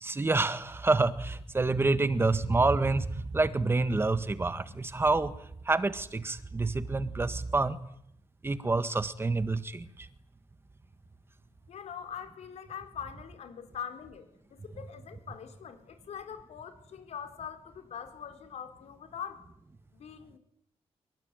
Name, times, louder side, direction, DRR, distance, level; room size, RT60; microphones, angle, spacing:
voice 1, 0.0-5.3 5.7-7.8 8.4-9.9, right 3 dB, 20° right, 12 dB, 1.7 m, -27 dB
voice 2, 11.7-19.4 19.9-20.4, left 8 dB, 90° left, 7 dB, 4.5 m, -43 dB
25.0 x 23.0 x 9.3 m, 0.72 s
wide cardioid pair, 140°, 11 cm